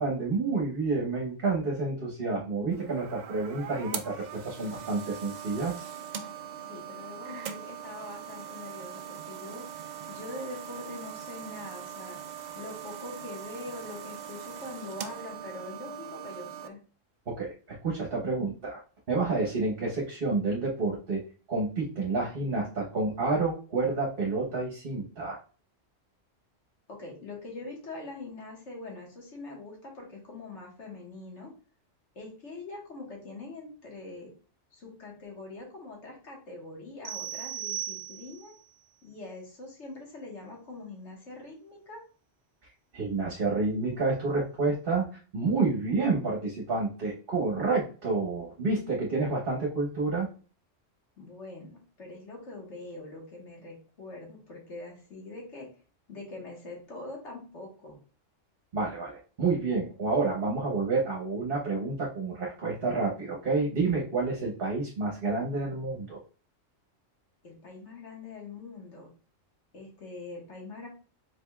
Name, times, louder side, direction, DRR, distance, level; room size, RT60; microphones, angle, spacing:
voice 1, 0.0-5.9 17.3-18.8 19.1-21.2 21.5-25.4 42.9-45.1 45.3-50.3 58.7-66.2, right 3 dB, 50° right, -2 dB, 1.2 m, -29 dB
sound 1, 2.7-16.7, right 8 dB, 70° right, 0.4 m, -41 dB
voice 2, 6.7-9.7 10.1-12.2 12.6-16.8 26.9-31.5 32.2-34.3 34.7-38.5 39.0-42.0 51.2-55.7 56.1-58.0 67.4-69.1 69.7-70.9, left 2 dB, 65° left, 0 dB, 1.8 m, -43 dB
sound 2, 37.0-38.6, right 11 dB, 30° right, 0.8 m, -37 dB
5.0 x 4.0 x 2.3 m, 0.37 s
omnidirectional pair, 1.3 m